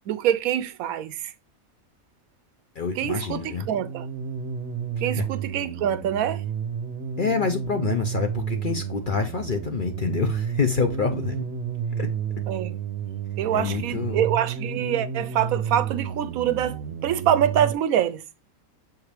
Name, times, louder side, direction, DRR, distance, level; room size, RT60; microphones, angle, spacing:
voice 1, 0.1-1.3 3.0-4.1 5.0-6.4 12.5-12.8 13.4-18.2, right 10 dB, 80° right, 1.0 m, -25 dB
voice 2, 2.8-3.7 7.2-11.4 12.0-12.1 13.5-14.3, left 5 dB, 50° left, 0.6 m, -27 dB
sound 1, 3.4-17.7, right 7 dB, 55° right, 0.9 m, -31 dB
7.0 x 4.7 x 3.3 m
omnidirectional pair, 1.5 m